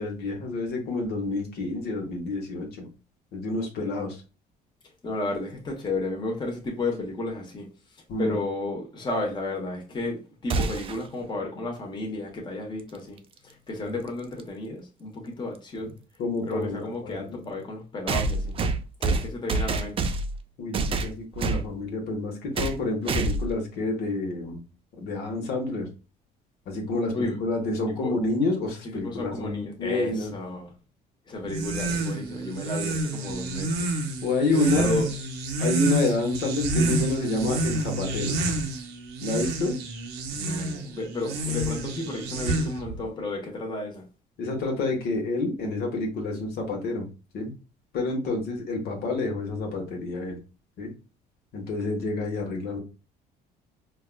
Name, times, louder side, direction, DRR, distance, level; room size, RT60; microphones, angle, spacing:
voice 1, 0.0-2.9 3.3-4.2 8.1-8.4 13.8-13.9 15.8-15.9 16.2-17.5 20.6-24.6 25.0-25.9 26.7-30.3 34.2-34.9 35.6-38.4 39.2-39.8 44.4-47.1 47.3-47.5 47.9-50.4 50.8-50.9 51.5-52.8, left 2 dB, 70° left, 1.1 m, -28 dB
voice 2, 5.0-7.7 8.2-13.2 13.4-16.0 16.4-18.6 19.0-20.1 27.1-27.4 28.0-28.1 28.8-30.7 31.3-33.9 34.5-35.3 40.3-44.1, left 2 dB, 25° left, 1.0 m, -32 dB
sound 1, 10.5-11.1 13.2-13.3 14.4-14.5 18.1-20.4 20.7-21.7 22.5-22.8 23.1-23.5, right 3 dB, 35° right, 0.4 m, -27 dB
sound 2, 31.4-43.0, right 2 dB, 85° right, 0.7 m, -29 dB
4.5 x 2.3 x 2.2 m
cardioid pair, 110°, 17 cm